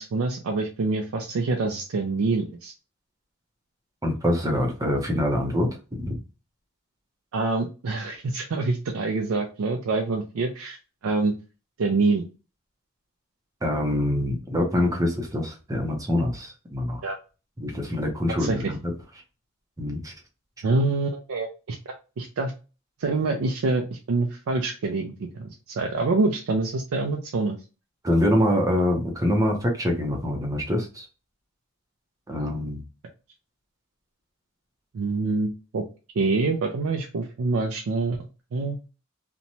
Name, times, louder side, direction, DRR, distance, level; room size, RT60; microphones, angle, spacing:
voice 1, 0.0-2.7 7.3-10.8 11.0-11.3 11.8-12.2 17.0-17.2 18.4-18.6 20.6-21.8 22.2-22.5 23.0-27.6 34.9-35.8 36.2-38.2 38.5-38.8, right 3 dB, 80° right, 2 dB, 0.4 m, -26 dB
voice 2, 4.0-6.2 13.6-17.0 17.6-18.8 19.8-20.1 28.0-31.1 32.3-32.8, left 1 dB, 15° right, 1 dB, 0.6 m, -25 dB
2.9 x 2.1 x 2.6 m, 0.33 s
head